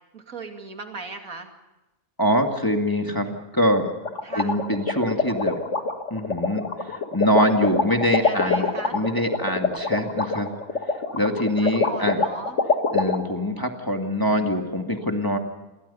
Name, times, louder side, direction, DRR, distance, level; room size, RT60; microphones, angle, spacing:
voice 1, 0.1-1.5 4.2-4.6 8.2-9.0 11.6-12.6, right 3 dB, 65° right, 4 dB, 2.9 m, -37 dB
voice 2, 2.2-3.9 4.4-5.6 6.1-8.6 8.9-10.5 11.1-12.2 12.9-15.4, equal, 15° left, 3 dB, 2.0 m, -24 dB
sound 1, 4.0-13.2, left 3 dB, 55° left, 2.4 m, -24 dB
29.0 x 23.0 x 5.6 m, 1.0 s
omnidirectional pair, 1.5 m